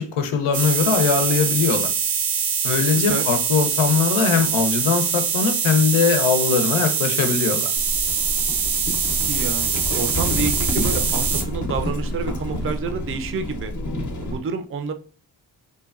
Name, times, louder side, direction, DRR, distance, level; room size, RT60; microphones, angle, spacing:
voice 1, 0.0-1.9 2.6-7.7, left 6 dB, 90° left, 7 dB, 0.6 m, -21 dB
sound 1, 0.5-11.4, right 7 dB, 75° right, 0.6 m, -23 dB
Livestock farm animals working animals, 7.8-14.4, left 1 dB, 40° left, 0.6 m, -28 dB
voice 2, 9.2-9.7 9.9-13.7 14.2-14.9, right 5 dB, 30° right, 8 dB, 0.4 m, -28 dB
2.8 x 2.2 x 2.3 m, 0.39 s
cardioid pair, 50°, 48 cm